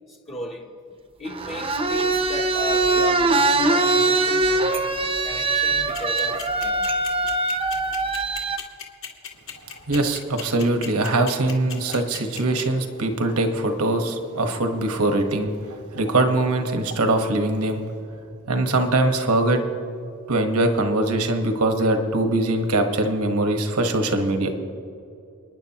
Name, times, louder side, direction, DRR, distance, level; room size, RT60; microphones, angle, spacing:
voice 1, 0.1-0.7 1.2-5.0 5.2-6.9, left 2 dB, 30° left, -2 dB, 0.9 m, -36 dB
sound 1, 1.3-8.6, right 3 dB, 25° right, 0.7 m, -22 dB
sound 2, 5.9-12.6, left 8 dB, 60° left, 2.1 m, -35 dB
voice 2, 9.9-15.5 15.9-17.8 18.5-19.6 20.3-24.5, right 2 dB, 80° right, 5 dB, 1.3 m, -22 dB
29.0 x 10.0 x 2.9 m, 2.7 s
head